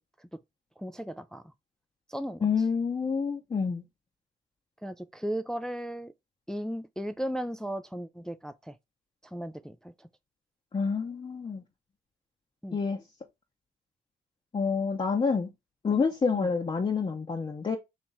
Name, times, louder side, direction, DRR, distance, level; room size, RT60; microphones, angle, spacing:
voice 1, 0.8-1.4 2.1-2.5 4.8-6.1 6.5-8.8 9.3-10.1 12.6-12.8 16.3-16.5, equal, 5° left, 0.3 m, -36 dB
voice 2, 2.4-3.8 10.7-11.6 12.7-13.0 14.5-15.5 15.8-17.8, left 5 dB, 25° left, 0.7 m, -28 dB
4.1 x 2.9 x 3.5 m
cardioid pair, 90°, 20 cm